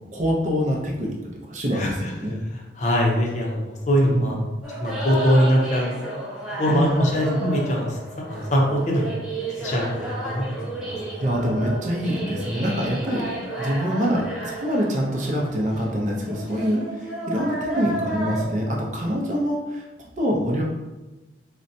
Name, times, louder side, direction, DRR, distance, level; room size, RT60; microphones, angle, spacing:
voice 1, 0.1-2.4 4.0-4.4 6.7-7.4 11.2-20.6, equal, 40° right, -2 dB, 0.5 m, -25 dB
voice 2, 1.7-2.1 2.5-4.4 4.8-6.0 6.6-8.0 8.3-9.1 9.6-11.0, equal, 40° left, -2 dB, 0.6 m, -22 dB
sound 1, 4.6-18.4, right 2 dB, 5° right, 0.7 m, -32 dB
4.0 x 2.1 x 2.6 m, 1.1 s
head